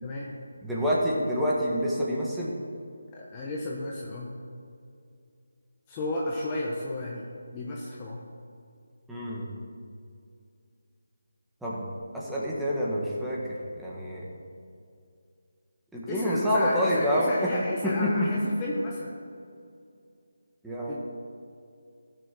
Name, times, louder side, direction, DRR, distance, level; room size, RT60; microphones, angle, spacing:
voice 1, 0.0-0.3 3.1-4.3 5.9-8.2 16.1-19.2 20.9-21.0, left 2 dB, 20° left, -4 dB, 1.2 m, -33 dB
voice 2, 0.6-2.5 9.1-9.5 11.6-13.4 13.8-14.3 15.9-17.5 17.8-18.2 20.6-21.0, equal, 5° right, -7 dB, 1.6 m, -27 dB
14.0 x 6.8 x 6.2 m, 2.4 s
figure-of-eight pair, 165°, 0 cm